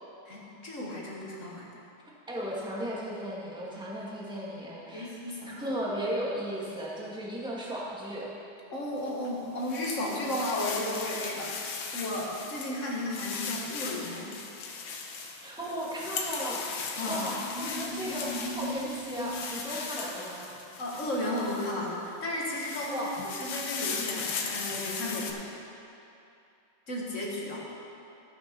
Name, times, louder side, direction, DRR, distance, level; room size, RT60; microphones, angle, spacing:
voice 1, 0.3-1.7 4.9-5.6 8.7-14.3 17.0-17.3 20.8-25.4 26.9-27.7, left 1 dB, 40° left, -4 dB, 1.9 m, -34 dB
voice 2, 2.3-5.1 5.5-8.3 15.4-20.5 22.9-23.1, equal, ahead, -5 dB, 1.5 m, -35 dB
sound 1, 9.0-21.9 22.3-25.3, left 5 dB, 70° left, 1.6 m, -38 dB
sound 2, 17.0-20.1, equal, 60° right, 2.2 m, -39 dB
15.0 x 6.0 x 5.3 m, 2.7 s
omnidirectional pair, 2.4 m